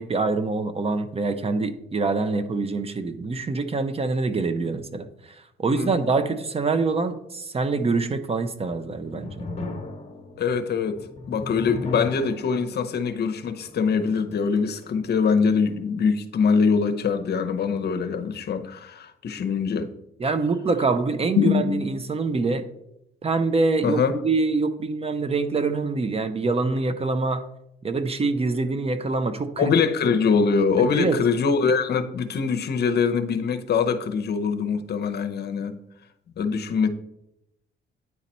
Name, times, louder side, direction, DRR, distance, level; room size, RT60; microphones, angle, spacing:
voice 1, 0.0-9.3 20.2-22.6 23.2-27.4 27.8-29.7 30.9-31.2, right 3 dB, 30° right, 0.6 m, -25 dB
sound 1, 8.7-15.8, left 3 dB, 35° left, 1.2 m, -38 dB
voice 2, 10.4-19.9 21.4-21.8 23.8-24.2 29.6-35.8 36.4-36.9, left 5 dB, 55° left, 0.7 m, -23 dB
9.4 x 4.0 x 4.2 m
cardioid pair, 90°, 20 cm